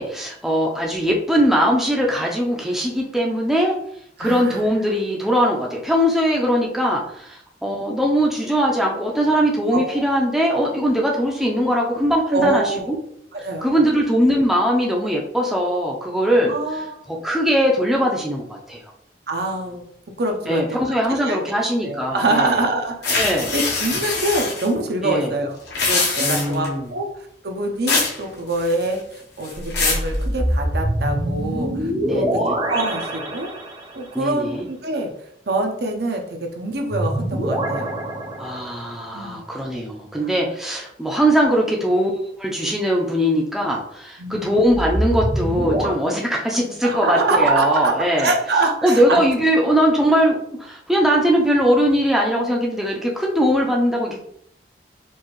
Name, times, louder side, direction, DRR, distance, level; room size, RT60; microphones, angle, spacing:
voice 1, 0.0-3.8 4.2-13.0 13.4-18.8 20.5-22.6 23.2-23.5 25.0-25.3 26.2-26.9 32.0-32.5 34.1-34.7 38.4-42.1 42.4-48.3 48.8-54.2, equal, ahead, -2 dB, 0.5 m, -20 dB
voice 2, 4.2-4.7 9.7-10.0 12.3-12.9 13.3-13.8 16.4-17.0 19.3-19.8 20.2-20.8 21.1-21.4 21.8-25.6 25.9-27.1 27.4-29.0 29.4-32.4 32.7-33.5 33.9-35.1 35.5-36.2 36.6-37.9 39.1-39.4 40.2-40.5 44.2-44.6 46.8-49.2, right 2 dB, 60° right, 3 dB, 0.6 m, -24 dB
sound 1, 23.0-24.7 25.6-26.7 27.9-28.2 28.5-29.0 29.4-30.1, left 3 dB, 65° left, 1.0 m, -23 dB
sound 2, 29.5-34.1 36.9-39.0 44.6-45.9, right 1 dB, 30° right, 0.8 m, -24 dB
4.5 x 2.6 x 3.0 m, 0.70 s
head